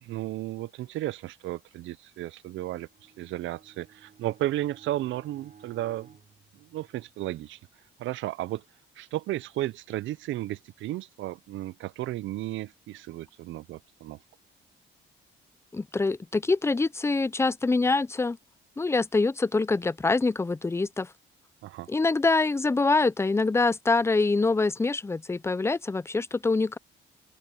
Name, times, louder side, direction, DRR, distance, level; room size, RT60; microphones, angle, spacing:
voice 1, 0.0-6.2 6.6-7.6 8.0-8.6 9.0-14.2 21.6-21.9, right 15 dB, 75° right, 0.5 m, -34 dB
Bowed string instrument, 2.8-7.4, right 6 dB, 45° right, 3.6 m, -56 dB
voice 2, 15.7-18.4 18.8-21.1 21.9-26.8, left 3 dB, 15° left, 0.5 m, -25 dB
open air
cardioid pair, 90°, 20 cm